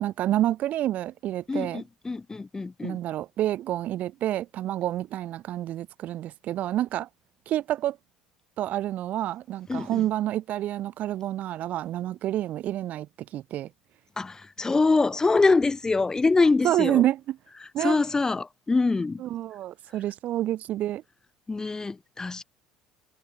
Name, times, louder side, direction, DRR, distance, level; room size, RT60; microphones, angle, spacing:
voice 1, 0.0-1.8 2.8-7.1 7.5-8.0 8.6-13.1 13.3-13.7 16.6-17.4 17.7-18.0 19.2-21.0, right 13 dB, 55° right, 1.8 m, -28 dB
voice 2, 1.5-3.0 9.7-10.1 14.2-17.0 17.8-19.2 21.5-22.4, left 3 dB, 20° left, 6.9 m, -24 dB
hypercardioid pair, 75°, 3 cm